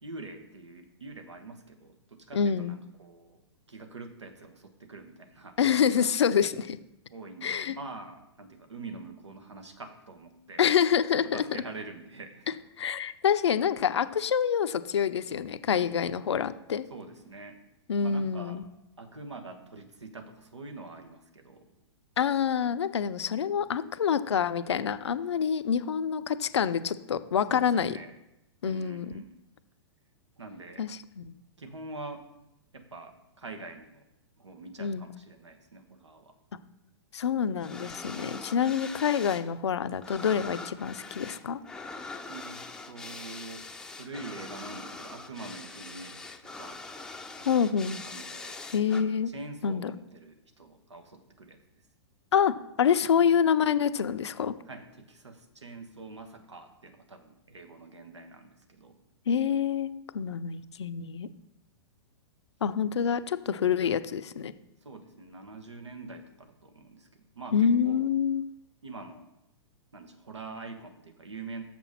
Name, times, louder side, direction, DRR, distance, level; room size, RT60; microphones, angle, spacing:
voice 1, 0.0-3.4 3.7-6.1 7.1-10.6 11.3-12.6 16.9-17.6 18.0-18.6 19.0-21.7 25.3-25.4 27.5-28.1 28.6-29.3 30.4-30.9 31.6-32.3 32.7-34.1 34.4-36.3 42.3-46.9 47.4-48.6 49.3-51.6 54.6-58.9 64.8-68.1 68.8-69.3 69.9-71.6, right 3 dB, 90° right, 6 dB, 1.3 m, -45 dB
voice 2, 2.3-2.8 5.6-6.8 7.4-7.7 10.6-11.4 12.8-16.9 17.9-18.6 22.2-27.9 28.6-29.1 30.8-30.9 31.2-31.4 34.8-35.1 37.1-41.6 47.5-48.0 48.7-49.3 49.6-49.9 52.3-54.5 59.3-61.3 62.6-64.5 67.5-68.4, left 7 dB, 75° left, 12 dB, 0.5 m, -27 dB
sound 1, 37.6-39.5 39.7-49.0, left 3 dB, 5° left, 0.5 m, -43 dB
6.9 x 6.0 x 5.7 m, 0.92 s
hypercardioid pair, 115°, 14 cm